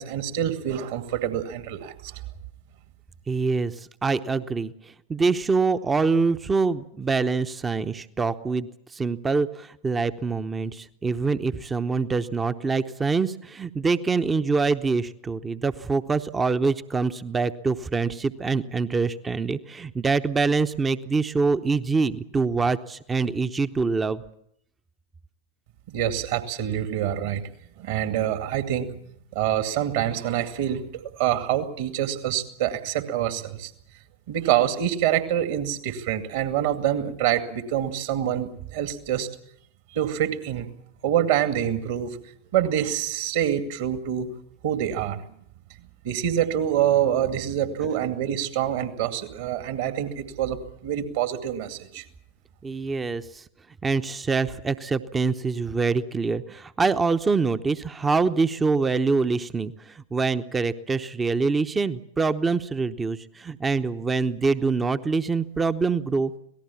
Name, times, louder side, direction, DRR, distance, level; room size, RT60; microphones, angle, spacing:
voice 1, 0.0-2.1 25.9-27.4 27.8-28.9 29.3-30.8 31.2-33.7 34.3-39.3 39.9-40.7 41.0-42.2 42.5-44.3 44.6-45.2 46.0-52.0, right 10 dB, 50° right, 8 dB, 2.3 m, -26 dB
voice 2, 3.3-24.2 47.8-47.9 52.6-53.4 53.8-66.3, right 4 dB, 15° right, 12 dB, 0.8 m, -25 dB
26.5 x 18.5 x 7.2 m, 0.73 s
figure-of-eight pair, 90°, 0 cm